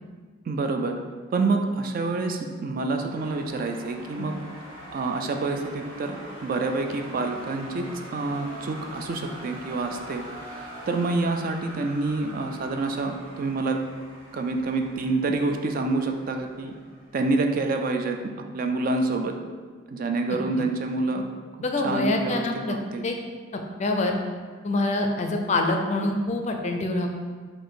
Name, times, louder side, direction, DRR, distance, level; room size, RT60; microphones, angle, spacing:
voice 1, 0.5-1.0 1.3-4.3 4.9-13.8 14.3-16.7 17.1-19.3 19.9-21.3 21.8-23.1, right 3 dB, 45° right, 4 dB, 0.3 m, -27 dB
sound 1, 3.1-17.9, right 1 dB, 25° right, 1.4 m, -43 dB
voice 2, 21.6-22.8 23.0-23.2 23.5-24.2 24.6-27.1, left 2 dB, 35° left, 3 dB, 0.4 m, -25 dB
4.1 x 2.5 x 4.7 m, 1.5 s
head